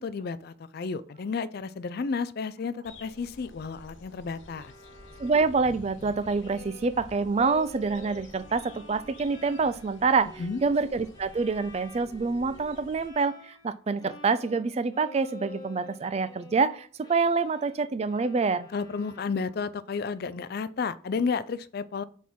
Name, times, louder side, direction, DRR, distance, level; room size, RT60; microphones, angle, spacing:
voice 1, 0.0-4.7 10.4-10.6 18.7-22.0, left 5 dB, 50° left, 0.4 m, -32 dB
sound 1, 2.8-13.1, left 2 dB, 70° left, 1.0 m, -50 dB
Bowed string instrument, 4.4-13.7 14.0-19.8, left 2 dB, 20° left, 1.2 m, -49 dB
voice 2, 5.2-10.3 10.6-18.7, right 4 dB, 30° right, 0.4 m, -26 dB
6.2 x 3.6 x 5.8 m
head